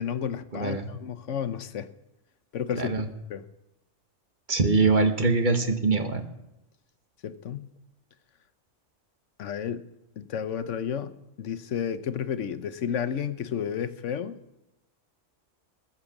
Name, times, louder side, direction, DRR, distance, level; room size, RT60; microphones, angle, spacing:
voice 1, 0.0-1.9 2.5-3.4 7.2-7.7 9.4-9.9 10.2-14.4, left 8 dB, 80° left, 1.2 m, -32 dB
voice 2, 0.5-0.9 2.8-3.0 4.5-6.2, right 3 dB, 45° right, 1.3 m, -23 dB
20.0 x 7.2 x 7.1 m
omnidirectional pair, 1.2 m